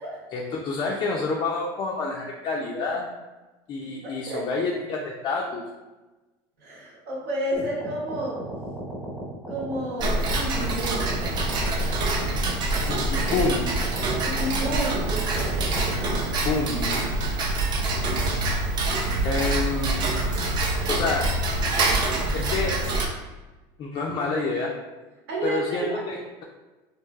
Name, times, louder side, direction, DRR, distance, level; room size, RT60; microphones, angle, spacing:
voice 1, 0.3-3.1 3.7-5.6 12.9-13.8 16.4-17.2 19.2-20.1 20.9-21.8 22.3-22.8 23.8-24.7 25.4-26.4, left 3 dB, 40° left, -1 dB, 0.3 m, -28 dB
voice 2, 4.0-4.4 6.6-8.4 9.5-11.2 14.2-15.8 17.7-17.9 25.3-26.0, right 1 dB, 75° right, -4 dB, 1.1 m, -31 dB
sound 1, 7.5-16.3, right 1 dB, 10° right, 1.0 m, -36 dB
Tick-tock, 10.0-23.1, right 2 dB, 45° right, 0.5 m, -25 dB
3.1 x 2.3 x 2.3 m, 1.2 s
supercardioid pair, 115°, 11 cm